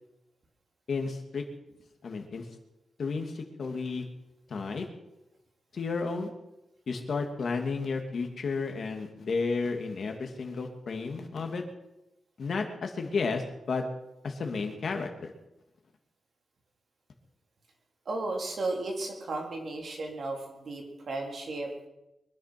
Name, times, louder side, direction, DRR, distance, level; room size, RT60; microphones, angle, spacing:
voice 1, 0.9-1.4 2.0-2.5 3.0-4.0 4.5-4.9 5.7-6.3 6.9-11.6 12.4-13.8 14.2-15.3, left 4 dB, 50° left, 4 dB, 2.4 m, -32 dB
voice 2, 18.1-21.7, right 2 dB, 45° right, 0 dB, 3.9 m, -34 dB
23.5 x 10.5 x 6.0 m, 0.91 s
wide cardioid pair, 175°, 0 cm